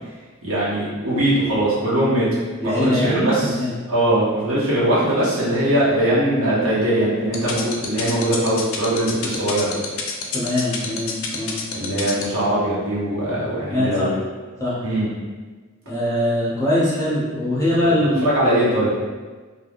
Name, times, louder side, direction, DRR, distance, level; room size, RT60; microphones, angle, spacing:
voice 1, 0.4-2.3 2.6-3.5 3.9-9.8 11.7-14.2 14.8-15.1 17.8-18.9, right 1 dB, 70° right, -9 dB, 1.0 m, -21 dB
voice 2, 2.6-3.7 10.3-11.5 13.7-14.1 14.6-14.8 15.9-18.3, left 1 dB, 15° left, -8 dB, 0.6 m, -22 dB
sound 1, 7.3-12.2, left 6 dB, 70° left, 0.4 m, -27 dB
3.3 x 2.3 x 2.4 m, 1.4 s
head